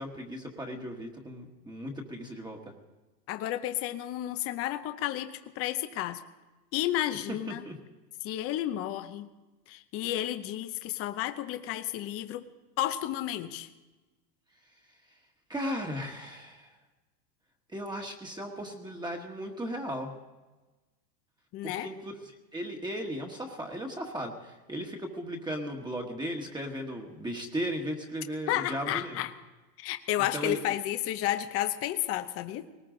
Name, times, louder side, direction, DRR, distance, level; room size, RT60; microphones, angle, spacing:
voice 1, 0.0-2.7 7.3-7.8 15.5-16.7 17.7-20.1 21.6-29.2 30.3-30.7, equal, 10° right, 1 dB, 1.4 m, -36 dB
voice 2, 3.3-6.2 6.7-7.6 8.2-9.3 9.7-12.5 12.8-13.7 21.5-21.9 28.5-29.3 29.8-32.7, left 13 dB, 30° left, 9 dB, 0.7 m, -32 dB
19.5 x 19.0 x 3.8 m, 1.2 s
supercardioid pair, 140°, 49 cm